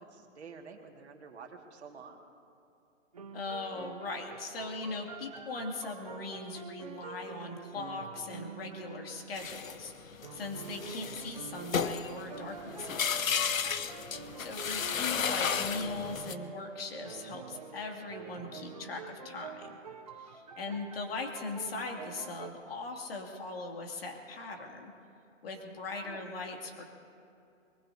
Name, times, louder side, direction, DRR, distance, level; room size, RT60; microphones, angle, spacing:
voice 1, 0.0-2.2 20.5-20.8 26.0-26.2, right 5 dB, 55° right, 3 dB, 2.1 m, -49 dB
sound 1, 3.1-9.5 10.2-16.7 17.0-22.5, right 5 dB, 30° right, 0.6 m, -47 dB
voice 2, 3.3-13.2 14.1-19.8 20.2-24.9 25.4-26.8, left 3 dB, 45° left, 2 dB, 2.6 m, -40 dB
sound 2, 9.4-16.4, left 7 dB, 85° left, 0.9 m, -33 dB
Dog, 12.0-17.5, right 2 dB, 10° right, 2.0 m, -49 dB
23.5 x 20.0 x 2.8 m, 2.6 s
hypercardioid pair, 165°, 39 cm